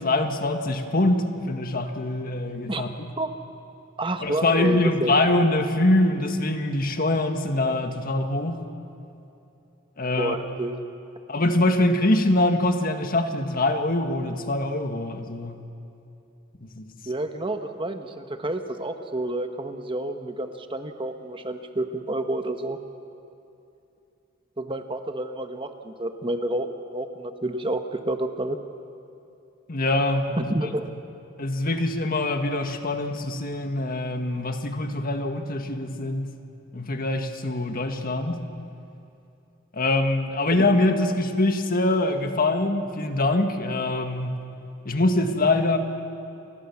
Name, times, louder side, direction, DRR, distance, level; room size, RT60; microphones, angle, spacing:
voice 1, 0.0-3.1 4.2-8.6 10.0-10.3 11.3-15.6 16.6-16.9 29.7-30.5 31.4-36.3 36.7-38.4 39.7-44.4 44.9-45.8, left 2 dB, 45° left, 6 dB, 1.9 m, -24 dB
voice 2, 4.0-5.1 10.1-10.8 17.1-22.8 24.6-28.6 30.4-30.9 40.5-40.6, right 1 dB, 25° right, 7 dB, 1.3 m, -29 dB
29.5 x 25.0 x 7.3 m, 2.8 s
head